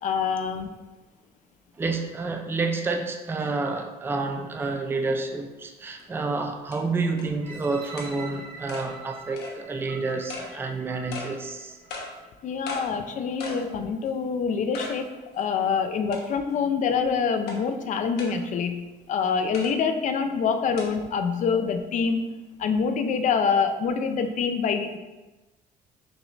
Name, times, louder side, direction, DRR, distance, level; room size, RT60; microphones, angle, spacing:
voice 1, 0.0-0.7 12.4-25.0, left 6 dB, 50° left, 7 dB, 0.4 m, -26 dB
voice 2, 1.8-11.8, right 3 dB, 15° right, 4 dB, 0.4 m, -29 dB
sound 1, 6.0-6.1 6.7-6.8 7.2-7.3 8.0-8.1 8.7-8.9 9.4-9.5 10.3-10.5 11.1-11.3 11.9-12.1 12.7-12.8 13.4-13.6 14.1-14.2 14.7-14.9 15.4-15.5 16.1-16.5 17.5-17.6 18.2-18.3 19.5-19.7 20.8-20.9, left 3 dB, 75° left, 0.9 m, -36 dB
sound 2, 7.4-12.3 12.9-13.0, right 3 dB, 55° right, 0.9 m, -45 dB
6.0 x 2.4 x 3.1 m, 1.1 s
cardioid pair, 110°, 17 cm